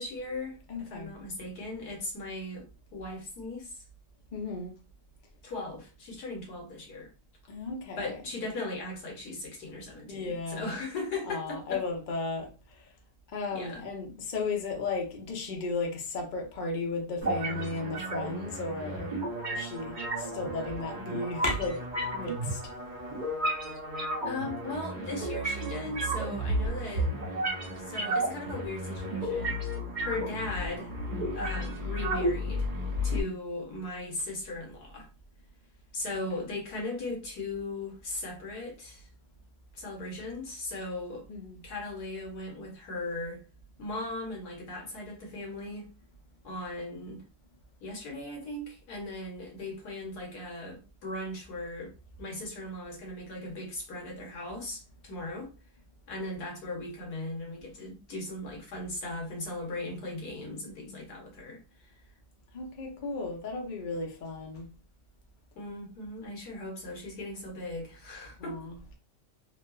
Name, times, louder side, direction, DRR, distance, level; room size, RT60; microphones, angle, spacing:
voice 1, 0.0-3.8 5.4-7.1 8.0-11.8 13.5-13.8 24.3-27.1 27.8-29.6 30.0-30.9 31.3-32.7 33.0-35.1 35.9-39.1 39.7-41.3 41.6-43.4 43.8-45.9 46.4-47.2 47.8-51.9 52.2-55.5 56.1-61.9 65.6-68.7, left 2 dB, 75° left, 1.5 m, -38 dB
voice 2, 0.7-1.1 4.3-4.7 7.5-8.2 10.1-10.8 11.3-12.5 13.3-19.1 19.5-19.9 20.3-21.8 22.1-22.6 33.1-33.3 41.3-41.6 60.7-61.0 62.5-64.7 68.4-68.9, left 3 dB, 50° left, 0.6 m, -35 dB
sound 1, 17.2-33.2, right 1 dB, 35° right, 1.0 m, -33 dB
3.3 x 2.7 x 2.3 m
omnidirectional pair, 1.8 m